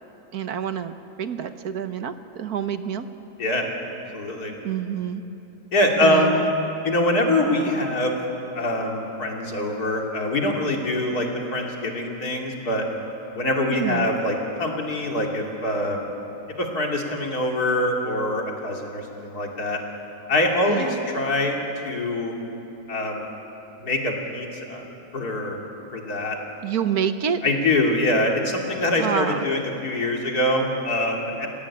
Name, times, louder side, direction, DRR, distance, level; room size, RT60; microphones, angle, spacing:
voice 1, 0.3-3.1 4.6-5.2 6.0-6.5 13.7-14.1 20.7-20.9 26.6-27.4 29.0-29.4, right 8 dB, 65° right, 9 dB, 1.4 m, -27 dB
voice 2, 4.1-4.5 5.7-6.3 6.8-8.2 8.6-12.9 13.4-16.1 16.6-19.8 20.3-21.6 21.8-22.3 22.9-23.3 23.8-24.8 25.1-25.6 25.9-26.4 27.4-31.5, left 1 dB, 65° left, 0 dB, 3.3 m, -24 dB
30.0 x 17.5 x 8.6 m, 3.0 s
omnidirectional pair, 1.8 m